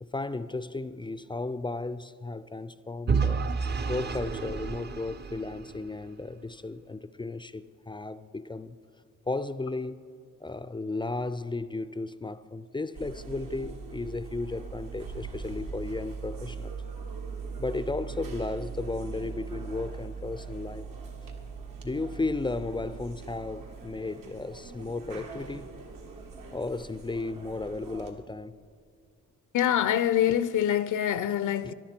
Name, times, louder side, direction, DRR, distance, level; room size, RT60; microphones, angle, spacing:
voice 1, 0.0-3.5 3.9-8.8 9.3-10.1 10.4-16.8 17.6-20.8 21.2-21.3 21.8-25.7 26.5-28.6 31.2-31.3 31.6-31.7, left 3 dB, 15° left, 0.4 m, -34 dB
Vehicle / Engine, 3.1-6.1, right 5 dB, 30° right, 0.6 m, -30 dB
sound 1, 12.9-28.1, right 5 dB, 80° right, 1.9 m, -41 dB
voice 2, 29.5-31.7, left 10 dB, 65° left, 0.5 m, -25 dB
18.0 x 11.5 x 4.4 m
cardioid pair, 100°, 33 cm